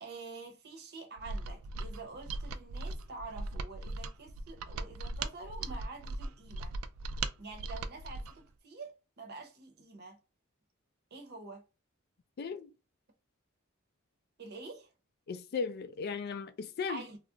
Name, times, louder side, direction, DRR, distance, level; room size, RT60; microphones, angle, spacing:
voice 1, 0.0-6.8 7.4-10.2 11.1-11.6 14.4-14.9 16.9-17.2, right 3 dB, 50° right, 0.7 m, -47 dB
Mechanisms, 1.2-8.4, right 3 dB, 75° right, 0.3 m, -39 dB
voice 2, 12.4-12.7 15.3-17.0, left 5 dB, 50° left, 0.4 m, -36 dB
2.4 x 2.0 x 3.6 m
head